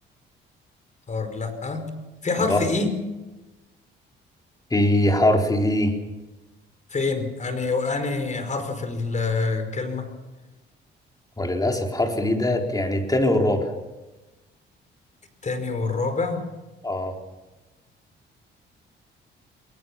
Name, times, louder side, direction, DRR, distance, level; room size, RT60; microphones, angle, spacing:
voice 1, 1.1-1.9 2.2-2.9 6.9-10.1 15.4-16.4, left 3 dB, 40° left, 8 dB, 5.0 m, -26 dB
voice 2, 4.7-5.9 11.4-13.7 16.8-17.1, left 1 dB, 20° left, 2 dB, 4.0 m, -22 dB
22.0 x 20.0 x 7.2 m, 1.1 s
cardioid pair, 90°, 20 cm